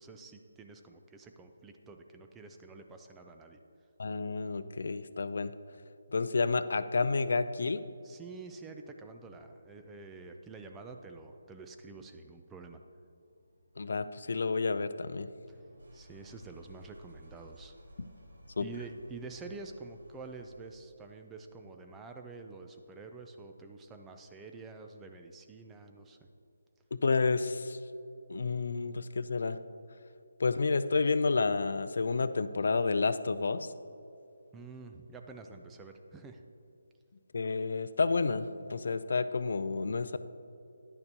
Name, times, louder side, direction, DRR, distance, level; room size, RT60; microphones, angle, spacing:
voice 1, 0.0-3.6 8.0-12.8 15.5-15.6 15.9-17.7 18.6-26.2 34.5-36.4, right 3 dB, 10° right, 4 dB, 0.3 m, -48 dB
voice 2, 4.0-5.5 6.1-7.8 13.8-15.3 18.6-18.7 27.0-27.8 28.3-29.6 30.4-33.7 37.3-40.2, left 4 dB, 65° left, 13 dB, 0.3 m, -30 dB
sound 1, 13.2-21.0, equal, 80° right, 1.6 m, -57 dB
10.5 x 6.5 x 2.9 m, 2.7 s
hypercardioid pair, 165°, 0 cm